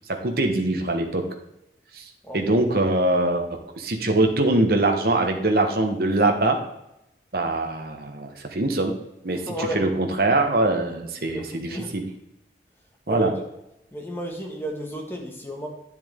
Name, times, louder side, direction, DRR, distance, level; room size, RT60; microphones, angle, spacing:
voice 1, 0.1-1.2 1.9-2.0 2.3-6.6 7.3-8.9 9.2-9.4 9.7-12.0 13.1-13.3, right 2 dB, 55° right, 4 dB, 1.2 m, -23 dB
voice 2, 9.3-9.8 11.3-12.0 13.1-13.3 13.9-15.7, right 1 dB, 15° left, 0 dB, 1.6 m, -33 dB
10.0 x 7.1 x 3.6 m, 0.87 s
head